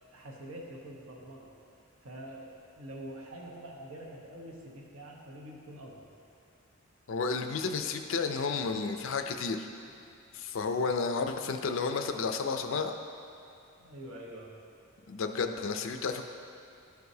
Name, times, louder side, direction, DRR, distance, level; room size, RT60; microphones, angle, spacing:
voice 1, 0.1-1.5 2.0-6.0 10.5-10.8 13.8-14.5, right 1 dB, 70° right, -2 dB, 1.1 m, -46 dB
voice 2, 7.1-9.7 10.3-12.9 15.1-16.2, left 4 dB, 65° left, 6 dB, 0.4 m, -31 dB
11.5 x 4.7 x 2.7 m, 2.5 s
head